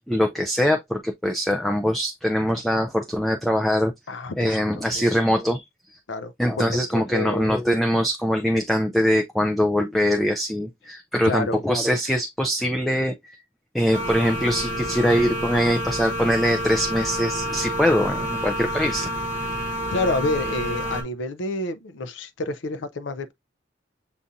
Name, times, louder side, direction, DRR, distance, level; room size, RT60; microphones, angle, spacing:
voice 1, 0.1-3.9 4.4-5.6 5.9-6.0 6.4-13.4 13.7-19.1, equal, ahead, 0.3 m, -23 dB
voice 2, 4.1-5.2 6.1-7.6 11.2-11.6 19.9-23.3, left 2 dB, 70° left, 0.5 m, -29 dB
sound 1, 13.9-21.0, equal, 45° right, 0.9 m, -29 dB
6.9 x 2.5 x 2.6 m
head